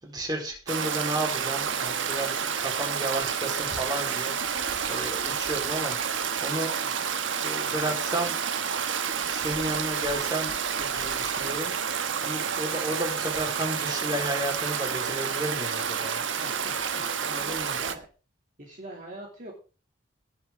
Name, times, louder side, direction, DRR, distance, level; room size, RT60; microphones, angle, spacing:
voice 1, 0.0-6.7 7.4-8.3 9.3-16.2 17.2-17.8, right 1 dB, 20° right, 1 dB, 4.1 m, -33 dB
Stream, 0.7-17.9, right 7 dB, 75° right, 1.2 m, -29 dB
voice 2, 16.2-18.1 18.6-19.5, right 1 dB, 40° right, -1 dB, 2.7 m, -44 dB
18.5 x 7.3 x 3.7 m, 0.34 s
head